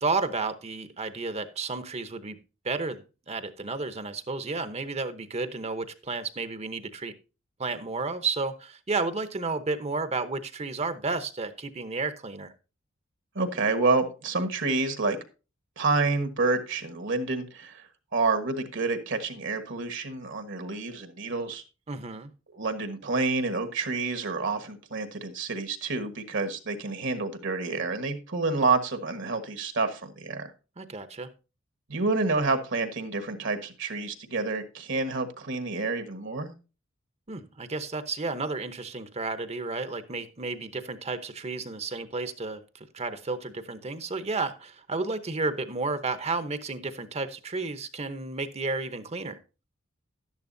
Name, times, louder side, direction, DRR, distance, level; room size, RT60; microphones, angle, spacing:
voice 1, 0.0-2.4 2.6-7.1 7.6-12.5 21.9-22.3 30.8-31.3 37.3-49.4, right 3 dB, 30° right, 0.9 m, -32 dB
voice 2, 13.3-15.2 15.8-21.6 22.5-30.5 31.9-36.5, right 3 dB, 65° right, 1.4 m, -28 dB
11.5 x 10.5 x 2.7 m
head